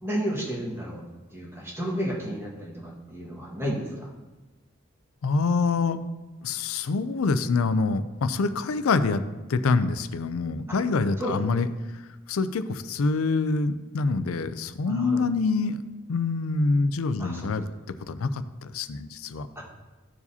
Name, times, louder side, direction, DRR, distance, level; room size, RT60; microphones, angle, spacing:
voice 1, 0.0-1.0 1.3-4.1 11.2-11.4 14.8-15.2 17.2-17.5 19.5-19.6, equal, 10° right, -4 dB, 1.5 m, -32 dB
voice 2, 5.2-6.0 6.4-9.2 9.5-11.7 11.9-12.0 12.3-15.8 16.1-17.7 18.1-19.5, left 4 dB, 85° left, 12 dB, 0.5 m, -25 dB
13.5 x 4.8 x 2.7 m, 1.2 s
head